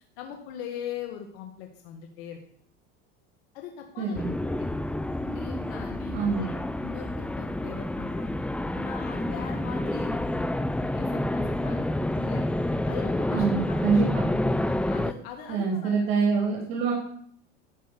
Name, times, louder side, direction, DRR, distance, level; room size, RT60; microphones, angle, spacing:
voice 1, 0.2-2.4 3.5-4.2 4.6-4.7 5.2-8.3 8.7-10.3 10.8-12.5 12.8-14.0 14.8-16.1, left 8 dB, 75° left, 4 dB, 1.7 m, -41 dB
voice 2, 4.0-4.3 6.1-6.5 13.3-14.2 15.5-16.9, right 5 dB, 75° right, -1 dB, 3.8 m, -25 dB
sound 1, 4.1-15.1, left 1 dB, 5° left, 0.6 m, -29 dB
12.0 x 5.8 x 8.0 m, 0.62 s
supercardioid pair, 100°, 31 cm